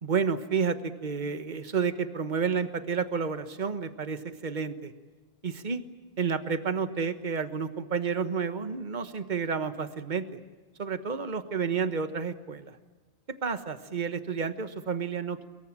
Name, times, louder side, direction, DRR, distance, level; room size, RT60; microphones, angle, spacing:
voice 1, 0.0-4.9 5.4-5.8 6.2-10.3 10.8-12.8 13.4-15.5, right 6 dB, 45° right, 10 dB, 1.5 m, -30 dB
24.0 x 22.5 x 8.8 m, 1.3 s
omnidirectional pair, 1.1 m